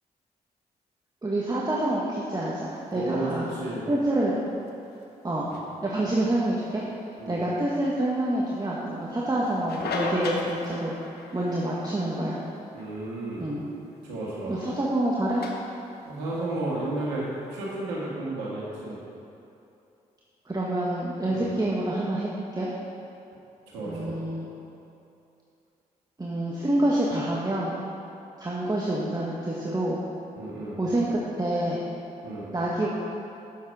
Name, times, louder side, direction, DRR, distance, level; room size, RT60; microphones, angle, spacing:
voice 1, 1.2-3.5 3.9-4.4 5.2-5.5 5.8-6.8 7.3-11.0 11.3-12.4 13.4-13.6 14.5-15.4 20.4-22.7 23.9-24.5 26.2-27.8 28.4-30.0 30.8-31.8 32.5-32.9, right 1 dB, 20° right, -5 dB, 1.5 m, -27 dB
sound 1, 2.6-17.8, left 3 dB, 70° left, 1.1 m, -41 dB
voice 2, 2.9-3.8 5.4-5.6 7.2-7.4 12.7-13.5 14.0-14.6 16.0-19.0 21.3-21.5 23.7-24.2 30.4-30.8 32.2-32.5, right 2 dB, 90° right, -6 dB, 1.9 m, -32 dB
8.5 x 7.2 x 4.8 m, 2.8 s
hypercardioid pair, 40°, 17 cm